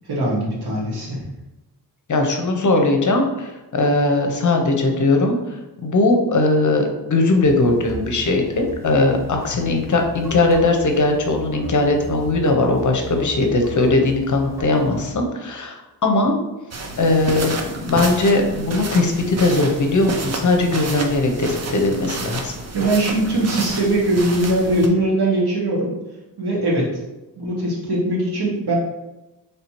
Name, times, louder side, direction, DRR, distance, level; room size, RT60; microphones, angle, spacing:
voice 1, 0.1-1.2 22.7-25.9 26.4-26.9 27.4-28.7, right 1 dB, 75° right, -5 dB, 1.5 m, -21 dB
voice 2, 2.1-5.4 5.8-16.4 17.0-22.6, left 2 dB, 50° left, 3 dB, 0.7 m, -19 dB
sound 1, 7.4-15.1, left 2 dB, 5° right, 0.9 m, -36 dB
sound 2, 16.7-24.9, right 3 dB, 40° right, 0.6 m, -30 dB
3.3 x 2.8 x 4.3 m, 1.0 s
wide cardioid pair, 100°, 40 cm